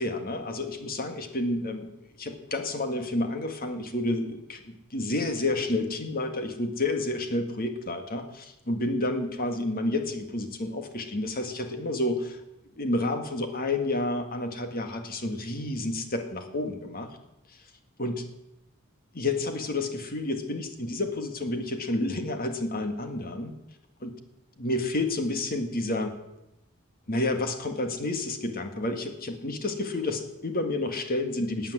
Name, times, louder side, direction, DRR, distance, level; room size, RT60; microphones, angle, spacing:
voice 1, 0.0-1.9 2.2-12.4 12.8-17.2 18.0-18.3 19.1-23.5 24.0-24.1 24.6-26.1 27.1-31.7, left 2 dB, 45° left, 6 dB, 1.9 m, -30 dB
17.5 x 9.1 x 7.5 m, 0.92 s
head